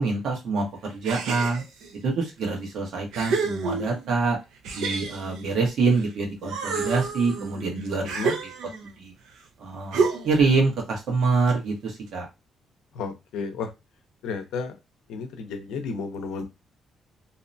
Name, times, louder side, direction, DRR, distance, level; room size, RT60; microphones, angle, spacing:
voice 1, 0.0-1.6 2.0-4.4 4.8-8.5 9.0-9.1 9.6-12.3, right 4 dB, 75° right, 0 dB, 1.1 m, -25 dB
sound 1, 1.0-1.9 2.5-2.6 3.1-4.1 4.6-6.1 6.4-8.9 9.9-10.5, right 4 dB, 90° right, 0.5 m, -29 dB
voice 2, 8.0-8.3 12.9-13.7 14.2-14.7 15.1-16.4, left 5 dB, 85° left, 7 dB, 0.5 m, -32 dB
2.7 x 2.1 x 2.6 m, 0.24 s
cardioid pair, 90°, 0 cm